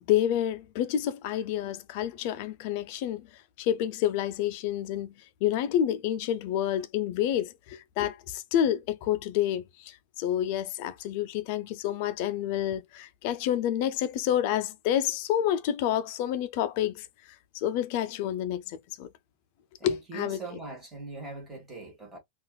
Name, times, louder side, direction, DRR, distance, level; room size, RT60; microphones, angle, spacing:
voice 1, 0.0-3.3 3.6-5.1 5.4-17.1 17.5-19.1 19.8-20.4, left 11 dB, 45° left, 0.5 m, -29 dB
voice 2, 19.8-22.2, right 2 dB, 10° right, 1.5 m, -41 dB
3.8 x 2.4 x 2.3 m
supercardioid pair, 170°, 0 cm